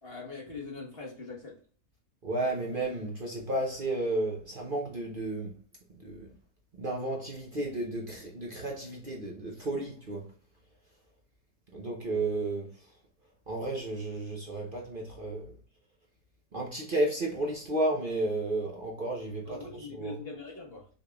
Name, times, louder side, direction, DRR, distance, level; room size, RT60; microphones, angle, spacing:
voice 1, 0.0-1.6 19.5-20.9, left 3 dB, 40° left, 1.4 m, -42 dB
voice 2, 2.2-5.5 6.0-6.3 6.8-10.2 11.7-12.7 13.5-15.5 16.5-20.2, right 2 dB, 40° right, 0.9 m, -32 dB
6.1 x 3.5 x 2.3 m
omnidirectional pair, 1.6 m